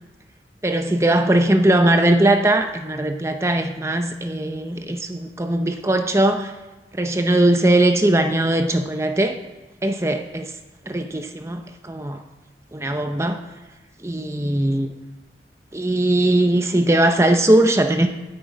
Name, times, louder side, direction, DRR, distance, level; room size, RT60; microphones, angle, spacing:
voice 1, 0.6-6.5 6.9-9.4 9.8-10.5 10.9-12.2 12.7-13.4 14.0-14.9 15.7-18.1, right 1 dB, 15° right, 7 dB, 0.6 m, -19 dB
9.3 x 8.6 x 8.9 m, 1.2 s
head